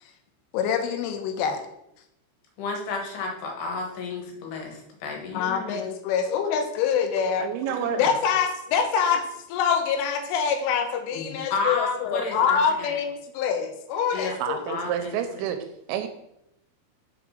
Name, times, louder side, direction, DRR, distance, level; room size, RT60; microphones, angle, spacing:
voice 1, 0.5-1.6 5.3-14.6, left 7 dB, 90° left, 6 dB, 3.4 m, -25 dB
voice 2, 2.6-5.8 7.9-8.1 11.1-12.9 14.1-14.3 14.7-15.4, left 4 dB, 65° left, 1 dB, 3.2 m, -32 dB
voice 3, 7.4-8.0 14.4-16.1, right 9 dB, 80° right, 7 dB, 2.7 m, -29 dB
6.1 x 5.9 x 6.2 m, 0.82 s
omnidirectional pair, 5.5 m